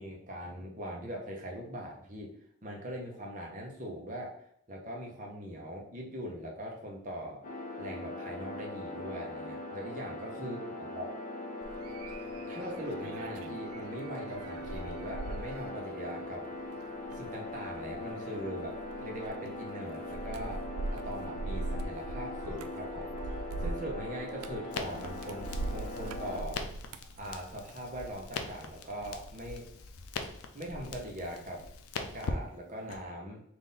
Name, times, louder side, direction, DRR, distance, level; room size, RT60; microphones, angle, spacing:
voice 1, 0.0-2.3 2.6-4.3 4.7-7.4 7.8-11.1 12.5-16.5 17.1-20.6 20.9-23.2 23.6-26.6 27.2-29.7 30.5-31.6 31.9-33.4, equal, 35° right, -1 dB, 0.8 m, -41 dB
sound 1, 7.4-26.4, left 2 dB, 40° left, 1.0 m, -41 dB
sound 2, 11.6-28.3 28.7-29.1, right 2 dB, 85° right, 0.4 m, -42 dB
Crackle, 24.7-33.0, left 4 dB, 85° left, 0.5 m, -42 dB
3.8 x 2.6 x 3.9 m, 0.68 s
head